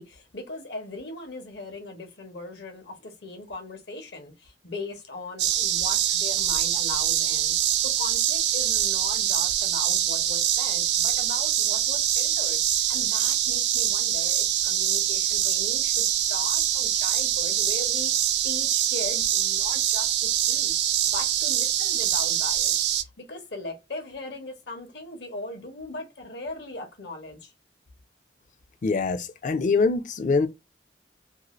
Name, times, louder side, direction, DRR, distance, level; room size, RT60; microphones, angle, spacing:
voice 1, 0.0-12.6 12.9-18.1 18.4-20.7 21.1-27.5, left 2 dB, 70° left, 1.0 m, -39 dB
sound 1, 5.4-23.0, right 11 dB, 65° right, 0.4 m, -24 dB
voice 2, 28.8-30.5, left 4 dB, 45° left, 0.4 m, -24 dB
2.7 x 2.4 x 2.9 m
head